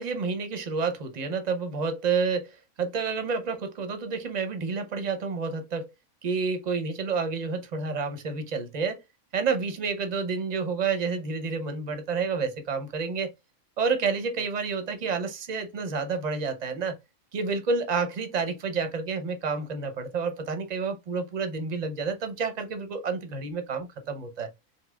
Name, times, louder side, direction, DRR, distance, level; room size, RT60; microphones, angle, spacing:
voice 1, 0.0-5.9 6.2-9.0 9.3-13.3 13.8-17.0 17.3-24.5, right 4 dB, 45° right, 0.6 m, -29 dB
3.9 x 2.8 x 2.2 m
omnidirectional pair, 1.5 m